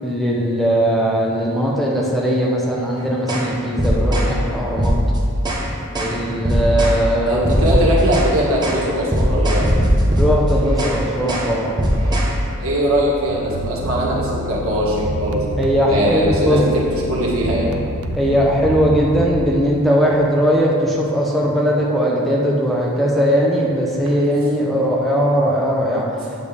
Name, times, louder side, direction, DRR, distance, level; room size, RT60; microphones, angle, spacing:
voice 1, 0.0-4.9 6.0-7.4 7.7-7.8 10.2-11.7 15.6-16.7 18.2-26.1, equal, ahead, -4 dB, 0.7 m, -19 dB
sound 1, 3.3-3.5 3.8-4.3 4.8-5.6 5.9-6.1 6.4-7.0 7.4-8.3 8.6-8.8 9.1-11.0 11.3-11.5 11.8-12.3, equal, 20° right, 1.0 m, -18 dB
voice 2, 7.3-9.6 12.6-15.4 15.9-17.7, equal, 70° right, -5 dB, 1.8 m, -20 dB
sound 2, 13.3-19.4, right 2 dB, 85° right, 0.5 m, -27 dB
8.8 x 6.7 x 3.4 m, 2.5 s
head